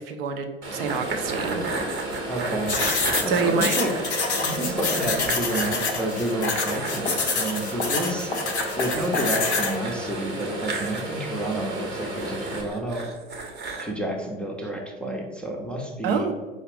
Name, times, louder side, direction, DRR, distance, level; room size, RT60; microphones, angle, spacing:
voice 1, 0.0-1.7 3.3-3.8 16.0-16.3, right 5 dB, 65° right, 5 dB, 0.5 m, -27 dB
sound 1, 0.6-12.6, right 2 dB, 80° right, 1.0 m, -34 dB
sound 2, 0.9-5.8 6.1-6.2 6.6-7.4 8.8-11.0 12.2-13.9, right 3 dB, 30° right, 0.8 m, -33 dB
voice 2, 2.3-2.8 3.2-3.9 4.4-8.3 8.8-13.1 13.8-16.3, right 1 dB, 5° left, 0 dB, 0.5 m, -30 dB
sound 3, 2.7-9.8, left 4 dB, 85° left, 0.5 m, -27 dB
5.0 x 2.4 x 3.4 m, 1.3 s
figure-of-eight pair, 70°, 32 cm